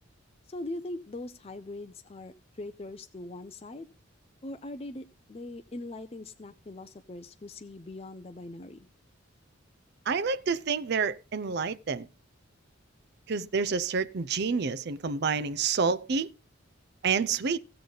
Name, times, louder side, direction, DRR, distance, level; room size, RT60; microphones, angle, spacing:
voice 1, 0.5-3.9 4.4-8.8, left 2 dB, 30° left, 0.5 m, -41 dB
voice 2, 10.1-12.1 13.3-16.3 17.0-17.6, right 5 dB, 55° right, 0.5 m, -28 dB
16.0 x 6.6 x 3.9 m
head